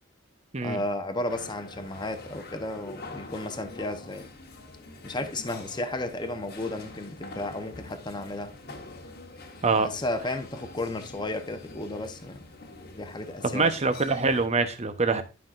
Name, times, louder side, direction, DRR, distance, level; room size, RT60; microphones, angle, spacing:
voice 1, 0.6-4.3 5.0-8.5 9.7-12.4 12.9-13.8, left 2 dB, 20° left, 0.9 m, -33 dB
sound 1, 1.3-14.5, left 2 dB, 50° left, 1.3 m, -45 dB
voice 2, 13.5-15.2, right 4 dB, 30° right, 0.9 m, -24 dB
11.5 x 5.7 x 2.5 m
head